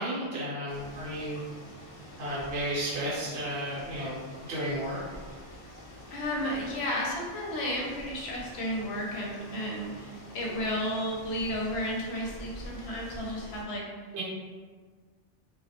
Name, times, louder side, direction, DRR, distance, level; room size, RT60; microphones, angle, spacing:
voice 1, 0.0-1.4 2.2-5.0 14.1-14.2, equal, 65° right, -7 dB, 0.9 m, -33 dB
sound 1, 0.7-13.6, equal, 50° left, 0.4 m, -46 dB
voice 2, 6.1-13.8, equal, 75° left, -2 dB, 0.8 m, -33 dB
2.3 x 2.0 x 2.7 m, 1.5 s
omnidirectional pair, 1.2 m